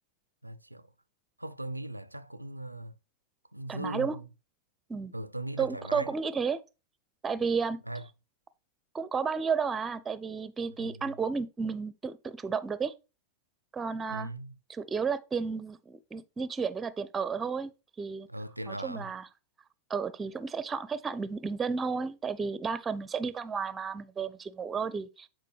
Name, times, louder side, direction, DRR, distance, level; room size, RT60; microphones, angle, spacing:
voice 1, 0.4-0.8 1.4-2.9 3.5-4.3 5.1-6.1 7.9-8.0 10.8-11.0 14.1-14.5 18.3-19.1, right 1 dB, 85° right, 0.4 m, -39 dB
voice 2, 3.7-4.2 4.9-5.1 5.6-6.6 7.2-7.8 8.9-12.9 13.7-14.3 14.7-17.7 18.0-18.3 18.7-19.3 19.9-25.3, right 5 dB, 15° right, 0.6 m, -32 dB
9.0 x 4.9 x 3.2 m
figure-of-eight pair, 90°, 0 cm